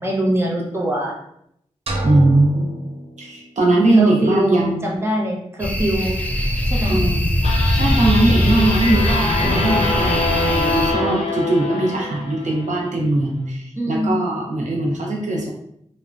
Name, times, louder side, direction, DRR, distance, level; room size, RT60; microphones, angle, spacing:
voice 1, 0.0-1.1 4.0-6.1 6.7-7.0 13.8-14.2, right 1 dB, 20° right, -3 dB, 0.7 m, -22 dB
sound 1, 1.9-3.8, right 1 dB, 55° right, 0.5 m, -28 dB
voice 2, 2.0-2.7 3.2-4.8 6.9-7.3 7.7-15.5, right 2 dB, 90° right, -1 dB, 0.7 m, -20 dB
sound 2, 5.6-10.9, equal, 10° left, 0.3 m, -20 dB
sound 3, 7.4-12.7, left 2 dB, 60° left, 0.6 m, -24 dB
3.1 x 2.1 x 2.5 m, 0.74 s
wide cardioid pair, 90°, 12 cm